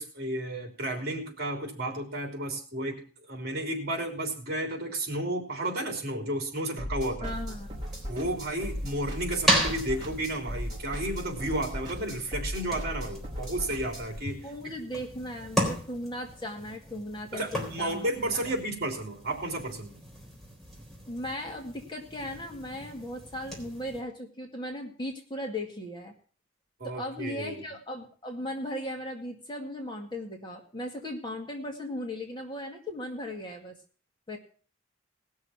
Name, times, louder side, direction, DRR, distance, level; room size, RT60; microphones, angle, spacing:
voice 1, 0.0-3.0 3.3-7.4 8.1-14.4 17.3-19.9 26.8-27.6, right 1 dB, 50° right, 3 dB, 3.5 m, -32 dB
sound 1, 6.8-14.2, equal, 20° right, 5.2 m, -37 dB
voice 2, 7.2-7.8 14.4-18.1 18.3-18.5 21.1-26.1 26.8-33.8 34.3-34.4, left 1 dB, 25° left, 1 dB, 2.1 m, -37 dB
sound 2, 7.3-24.0, equal, ahead, 3.9 m, -36 dB
19.0 x 6.5 x 5.8 m, 0.42 s
head